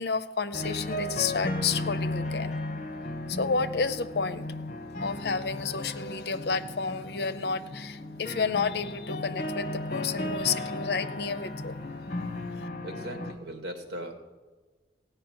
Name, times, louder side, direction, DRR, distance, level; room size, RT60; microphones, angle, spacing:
voice 1, 0.0-2.5 3.3-4.5 5.0-11.8 12.2-12.7, left 5 dB, 65° left, 12 dB, 0.6 m, -31 dB
sound 1, 0.5-13.3, left 1 dB, 45° left, 1.1 m, -35 dB
voice 2, 12.8-14.2, right 1 dB, 80° right, 4 dB, 1.9 m, -38 dB
16.5 x 5.6 x 8.8 m, 1.3 s
head